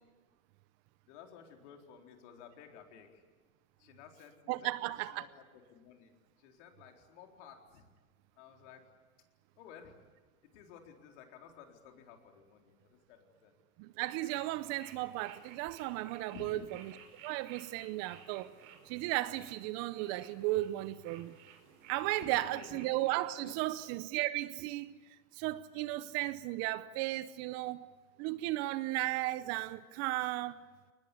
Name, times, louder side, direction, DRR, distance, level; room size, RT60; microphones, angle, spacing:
voice 1, 1.1-3.2 3.8-5.3 5.5-6.1 6.4-7.9 8.4-8.8 9.6-9.9 10.5-13.5 16.3-16.7 22.0-22.9 23.4-23.5, left 7 dB, 55° left, 4.2 m, -54 dB
voice 2, 4.5-5.3 13.8-16.6 17.2-18.5 18.8-21.4 21.9-25.0 25.3-27.9 28.2-30.6, right 17 dB, 35° right, 0.8 m, -35 dB
sound 1, 14.0-23.3, right 8 dB, 65° right, 4.4 m, -56 dB
22.5 x 20.0 x 9.9 m
hypercardioid pair, 125°, 42 cm